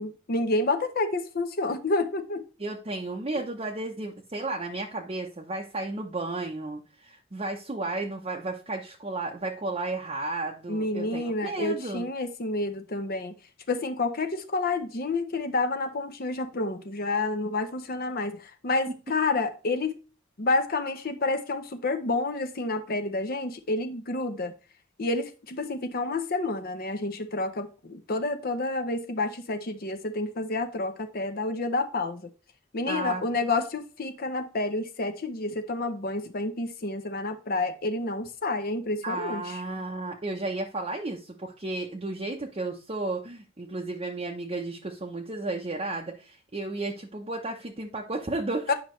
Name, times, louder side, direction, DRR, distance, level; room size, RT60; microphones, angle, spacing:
voice 1, 0.0-2.4 10.7-13.3 13.7-19.9 20.4-24.5 25.0-32.3 32.7-39.6 48.7-48.8, left 2 dB, 50° left, 0.7 m, -29 dB
voice 2, 2.6-12.1 32.9-33.2 39.0-48.7, right 2 dB, 30° right, 0.7 m, -33 dB
9.4 x 5.5 x 3.1 m
head